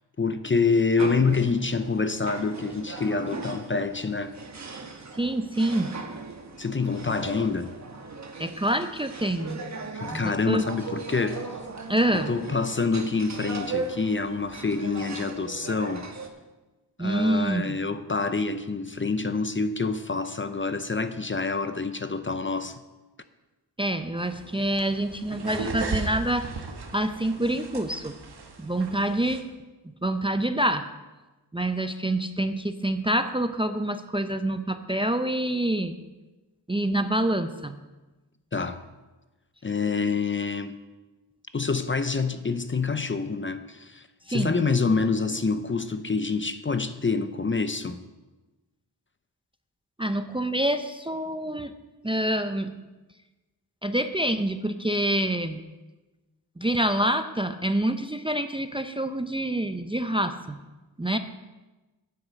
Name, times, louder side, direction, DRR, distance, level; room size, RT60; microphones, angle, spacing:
voice 1, 0.2-4.3 6.6-7.7 9.9-11.5 12.1-16.1 17.0-22.8 38.5-38.8 39.6-40.8 41.5-48.0, left 4 dB, 30° left, 0.6 m, -27 dB
sound 1, 1.0-16.3, right 4 dB, 40° right, 1.3 m, -38 dB
voice 2, 5.2-5.9 8.4-9.6 10.1-10.6 11.9-12.3 17.0-17.8 23.8-26.5 26.9-28.2 28.6-29.5 30.0-30.8 31.5-35.9 36.7-37.8 44.3-44.6 50.0-51.7 52.0-52.7 53.8-55.6 56.6-60.6 61.0-61.2, right 1 dB, 10° right, 0.6 m, -26 dB
sound 2, 24.2-29.4, right 4 dB, 60° right, 1.4 m, -36 dB
9.7 x 7.8 x 6.3 m
wide cardioid pair, 70°, 43 cm